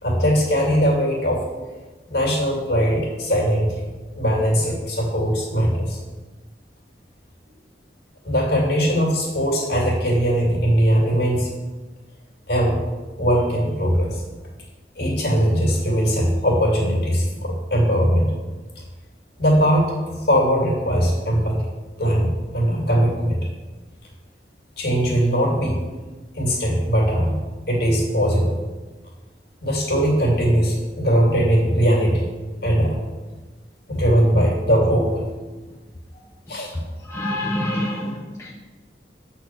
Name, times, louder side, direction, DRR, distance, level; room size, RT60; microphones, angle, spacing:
voice 1, 0.0-1.4 2.1-3.9 4.2-6.0 8.2-11.5 12.5-12.8 13.2-14.2 15.0-18.3 18.8-18.9 19.4-21.7 22.0-23.5 24.8-25.8 26.3-27.4 27.7-28.6 29.6-32.2 32.6-33.0 33.9-35.2 36.5-36.8, equal, 65° left, 2.4 m, -20 dB
voice 2, 37.1-38.6, left 1 dB, 15° left, 0.8 m, -26 dB
8.3 x 4.3 x 5.8 m
head